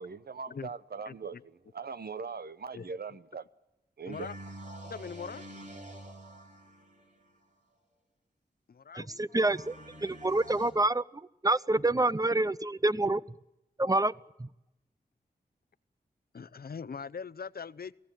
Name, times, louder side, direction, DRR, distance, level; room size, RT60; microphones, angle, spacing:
voice 1, 0.0-3.4 4.0-4.3, right 5 dB, 70° right, 0.9 m, -41 dB
voice 2, 1.1-1.4 2.7-2.9 4.1-4.4 4.8-5.5 8.7-9.2 12.0-12.1 16.3-17.9, left 6 dB, 65° left, 0.8 m, -41 dB
sound 1, 4.1-7.3 9.3-10.7, right 1 dB, 45° right, 6.1 m, -47 dB
voice 3, 8.9-9.7 10.0-11.0 11.4-13.2 13.8-14.1 14.4-14.5, right 2 dB, 20° right, 0.7 m, -27 dB
23.0 x 16.5 x 9.1 m
cardioid pair, 50°, 17 cm